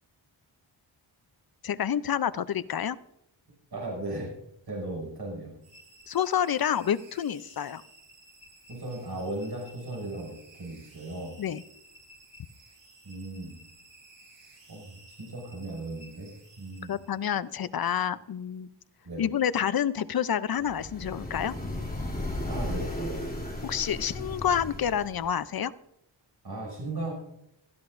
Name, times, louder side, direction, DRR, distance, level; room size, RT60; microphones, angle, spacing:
voice 1, 1.6-3.0 6.1-7.8 11.4-11.6 16.9-18.7 19.2-21.5 23.6-25.7, left 9 dB, 55° left, 15 dB, 0.6 m, -28 dB
voice 2, 3.7-4.3 4.7-5.5 8.7-11.4 13.0-13.6 14.7-16.3 16.6-17.0 19.0-19.3 22.5-23.3 26.4-27.1, right 2 dB, 55° right, -2 dB, 5.8 m, -36 dB
sound 1, 5.6-17.5, right 1 dB, 85° right, 4.8 m, -55 dB
sound 2, 20.6-25.3, left 1 dB, 20° left, 3.1 m, -35 dB
20.5 x 12.5 x 2.6 m, 0.81 s
wide cardioid pair, 85°, 45 cm